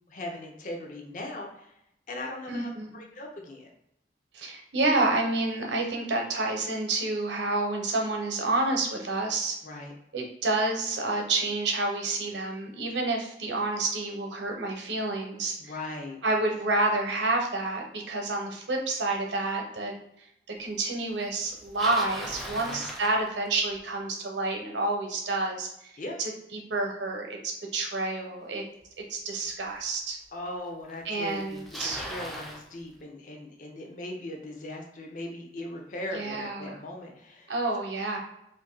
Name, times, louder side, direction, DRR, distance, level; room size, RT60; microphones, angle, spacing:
voice 1, 0.1-1.8 2.1-3.7 9.6-9.9 15.6-16.2 22.6-22.9 26.0-26.2 30.3-37.5, left 1 dB, 45° left, 2 dB, 0.6 m, -39 dB
voice 2, 2.5-2.9 4.3-9.6 10.1-15.7 16.2-20.0 20.6-25.7 26.2-28.6 29.1-30.2 31.0-32.0 36.1-36.8 37.5-38.2, right 2 dB, 90° right, 1 dB, 0.8 m, -29 dB
Bicycle, 21.4-23.8 28.8-28.9 29.8-29.9 30.9-31.0 31.2-32.6, equal, ahead, 0.4 m, -38 dB
2.6 x 2.5 x 3.8 m, 0.80 s
head